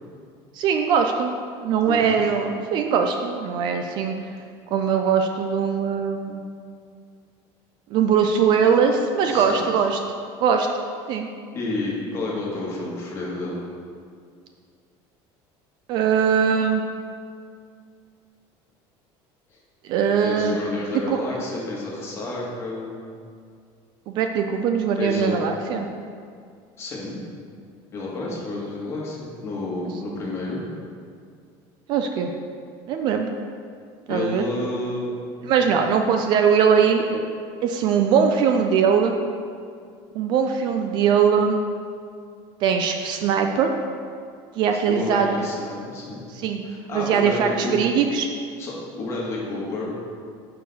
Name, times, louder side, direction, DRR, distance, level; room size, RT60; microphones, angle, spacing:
voice 1, 0.6-1.3 1.6-4.1 4.7-6.4 7.9-10.0 10.4-10.7 11.1-11.3 15.9-16.8 19.9-20.6 21.1-21.2 24.1-25.9 31.9-32.3 32.9-33.3 34.1-34.5 35.4-37.3 37.6-39.1 40.1-41.6 42.6-43.7 44.5-45.3 46.4-46.6 46.9-48.3, right 6 dB, 45° right, 5 dB, 0.4 m, -21 dB
voice 2, 1.9-2.3 9.3-9.6 11.5-13.6 19.5-19.6 20.2-23.0 25.0-25.4 26.8-27.2 27.9-30.6 34.1-35.1 44.7-46.2 46.6-47.8 48.6-49.9, left 2 dB, 25° left, -5 dB, 1.4 m, -30 dB
6.3 x 4.7 x 5.3 m, 2.2 s
cardioid pair, 180°, 11 cm